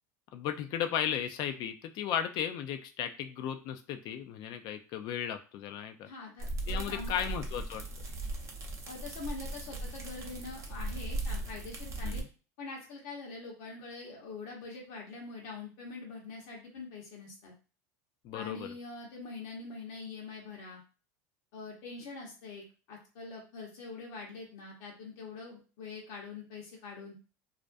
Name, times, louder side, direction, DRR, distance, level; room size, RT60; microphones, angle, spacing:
voice 1, 0.3-6.1 6.7-7.9 12.0-12.3 18.2-18.7, left 9 dB, 55° left, 8 dB, 0.4 m, -35 dB
voice 2, 6.0-7.3 8.9-12.2 12.6-17.5 18.3-20.8 21.5-27.1, left 3 dB, 70° left, -3 dB, 0.9 m, -44 dB
sound 1, 6.4-12.2, right 2 dB, 35° right, 0.6 m, -38 dB
2.4 x 2.1 x 2.5 m, 0.35 s
supercardioid pair, 105°, 9 cm